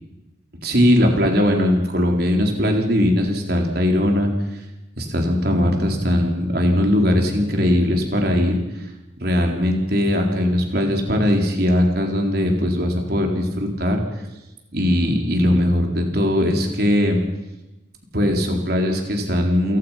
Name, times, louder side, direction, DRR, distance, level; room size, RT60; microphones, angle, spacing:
voice 1, 0.6-4.6 5.0-8.9 9.2-14.0 14.7-17.2 18.1-19.8, left 1 dB, 50° right, 2 dB, 4.2 m, -20 dB
29.5 x 17.5 x 5.9 m, 0.99 s
head